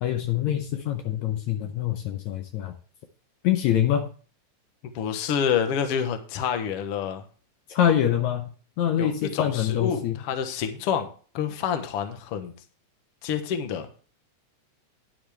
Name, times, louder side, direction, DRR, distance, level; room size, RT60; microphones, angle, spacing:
voice 1, 0.0-2.7 3.4-4.1 7.7-8.5 8.8-10.2, left 10 dB, 75° left, 6 dB, 2.0 m, -25 dB
voice 2, 5.0-7.2 9.0-11.1 11.3-12.5 13.2-13.9, left 7 dB, 60° left, 8 dB, 1.9 m, -28 dB
10.5 x 10.0 x 3.3 m, 0.39 s
omnidirectional pair, 3.5 m